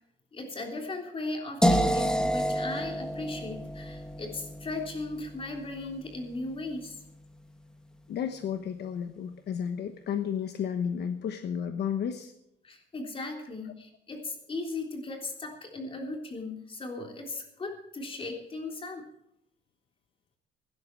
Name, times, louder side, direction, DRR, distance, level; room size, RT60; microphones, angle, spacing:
voice 1, 0.3-7.0 12.6-19.0, left 2 dB, 30° left, 2 dB, 3.5 m, -37 dB
sound 1, 1.6-7.5, equal, 5° left, 1.3 m, -30 dB
voice 2, 8.1-12.3, left 8 dB, 65° left, 8 dB, 1.1 m, -32 dB
17.0 x 11.5 x 4.6 m, 0.79 s
cardioid pair, 135°, 19 cm